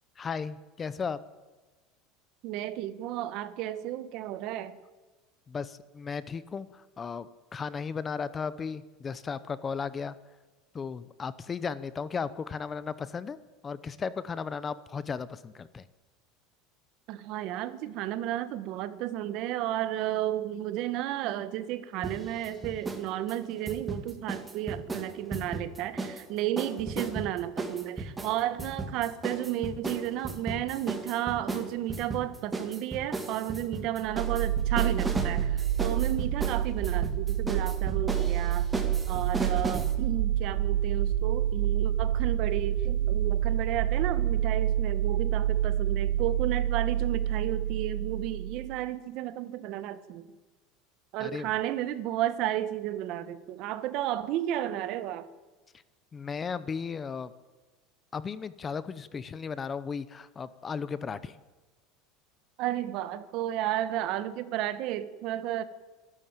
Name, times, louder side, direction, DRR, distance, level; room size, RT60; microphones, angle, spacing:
voice 1, 0.2-1.2 5.5-10.1 10.7-13.4 13.6-15.9 51.2-51.5 56.1-57.3 58.1-61.4, left 5 dB, 15° left, 16 dB, 0.7 m, -35 dB
voice 2, 2.4-4.8 17.1-38.7 39.1-50.3 51.1-55.3 62.6-65.6, right 13 dB, 45° right, 14 dB, 1.4 m, -33 dB
sound 1, 22.0-23.0 23.3-26.2 26.6-39.9, right 3 dB, 10° right, 2.1 m, -35 dB
sound 2, 34.0-48.8, right 11 dB, 70° right, 1.5 m, -28 dB
25.5 x 12.5 x 9.1 m, 1.3 s
cardioid pair, 175°, 0 cm